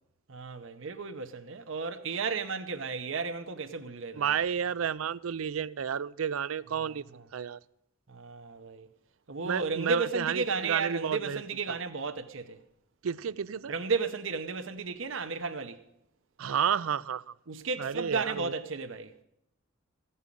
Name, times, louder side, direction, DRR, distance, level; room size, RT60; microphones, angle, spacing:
voice 1, 0.3-4.3 6.8-7.2 8.1-8.9 9.3-12.6 13.7-15.8 17.5-19.1, right 4 dB, 65° right, 0.8 m, -33 dB
voice 2, 4.1-7.0 7.3-7.6 9.4-11.4 11.7-11.8 13.0-13.7 16.4-17.2 17.8-18.5, right 8 dB, 80° right, 0.5 m, -31 dB
15.5 x 5.6 x 9.9 m
head